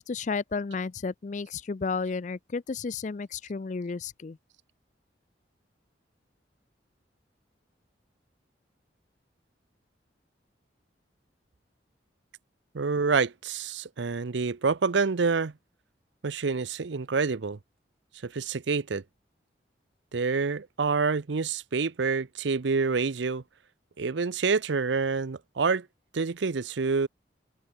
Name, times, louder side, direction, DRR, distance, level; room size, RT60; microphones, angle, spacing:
voice 1, 0.0-4.4, left 4 dB, 40° left, 0.4 m, -32 dB
voice 2, 12.7-15.5 16.2-17.6 18.2-19.0 20.1-23.4 24.0-25.9 26.1-27.1, right 4 dB, 80° right, 0.6 m, -27 dB
open air
head